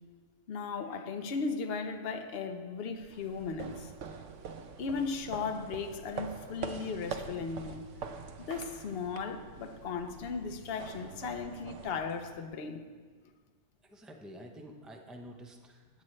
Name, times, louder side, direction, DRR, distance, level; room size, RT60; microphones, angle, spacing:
voice 1, 0.5-3.9 4.8-7.8 8.5-12.8, left 5 dB, 60° left, 6 dB, 0.9 m, -36 dB
sound 1, 3.0-12.6, right 5 dB, 85° right, 1.0 m, -44 dB
voice 2, 13.8-16.0, equal, ahead, 2 dB, 0.5 m, -49 dB
12.5 x 8.7 x 3.2 m, 1.5 s
omnidirectional pair, 1.2 m